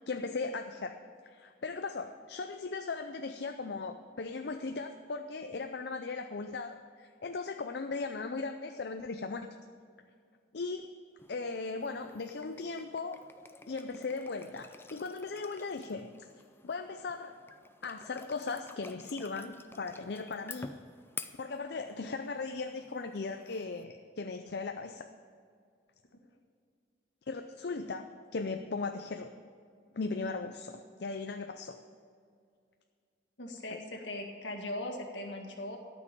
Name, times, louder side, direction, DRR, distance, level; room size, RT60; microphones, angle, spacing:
voice 1, 0.1-0.9 1.2-9.6 10.5-10.9 11.3-13.2 13.7-16.1 16.6-17.4 17.8-20.8 21.4-25.1 27.3-29.3 29.9-31.8 33.7-33.8, left 4 dB, 65° left, 6 dB, 0.5 m, -38 dB
sound 1, 11.2-23.8, left 4 dB, 10° left, 0.4 m, -51 dB
voice 2, 33.4-35.8, left 1 dB, 80° left, 2 dB, 1.9 m, -39 dB
13.0 x 6.1 x 9.0 m, 2.2 s
head